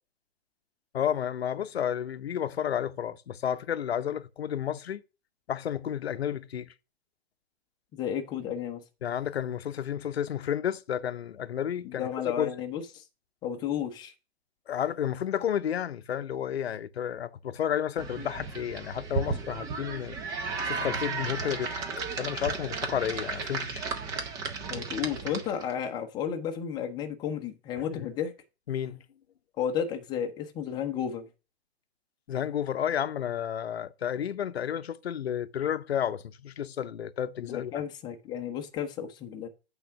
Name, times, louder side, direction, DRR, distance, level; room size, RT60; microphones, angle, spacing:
voice 1, 0.9-5.0 5.5-6.7 9.0-12.1 12.4-12.5 14.7-20.2 20.6-23.9 27.9-28.1 28.7-29.0 32.3-37.8, left 9 dB, 75° left, 0.7 m, -31 dB
voice 2, 7.9-8.8 11.8-13.0 13.4-14.1 24.7-28.3 29.6-31.3 37.4-39.5, left 8 dB, 15° left, 0.8 m, -33 dB
sound 1, 18.0-25.7, right 5 dB, 10° right, 0.6 m, -34 dB
8.5 x 3.7 x 5.8 m
hypercardioid pair, 145°, 31 cm